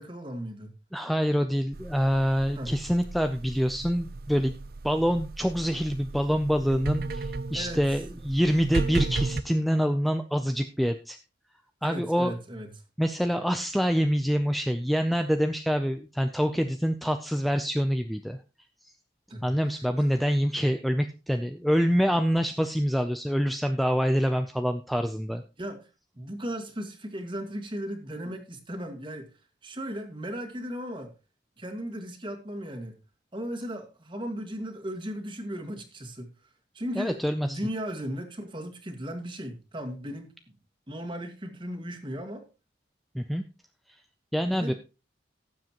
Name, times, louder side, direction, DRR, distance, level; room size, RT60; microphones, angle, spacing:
voice 1, 0.0-0.8 2.5-2.8 7.5-7.8 11.8-12.7 19.3-19.5 25.6-25.9 26.2-29.3 29.6-31.1 31.6-33.0 33.3-36.3 36.7-40.5 40.9-42.4 44.5-44.7, equal, 25° right, 4 dB, 1.9 m, -36 dB
voice 2, 0.9-4.6 4.8-11.2 11.8-12.3 13.0-18.4 19.4-25.4 36.9-37.6 43.1-43.4 44.3-44.7, equal, ahead, 7 dB, 0.5 m, -26 dB
sound 1, 1.7-9.4, right 3 dB, 55° right, 0.5 m, -35 dB
17.5 x 7.6 x 3.0 m, 0.31 s
head